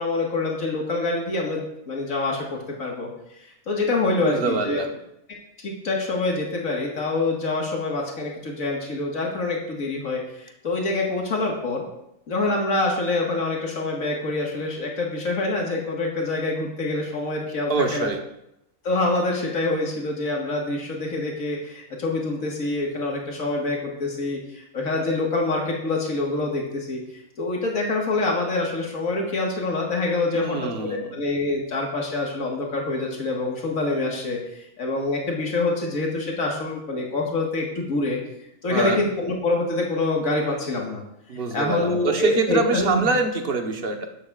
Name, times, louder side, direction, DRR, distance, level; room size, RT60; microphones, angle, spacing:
voice 1, 0.0-3.1 3.4-4.8 5.6-11.8 12.3-18.1 18.8-27.0 27.4-30.6 30.8-38.2 38.6-41.0 41.3-43.1, left 2 dB, 90° left, -1 dB, 2.1 m, -26 dB
voice 2, 4.2-4.9 17.7-18.2 30.3-31.1 38.7-39.0 41.3-44.1, right 4 dB, 45° right, 3 dB, 1.3 m, -25 dB
12.5 x 11.5 x 2.5 m, 0.82 s
omnidirectional pair, 1.4 m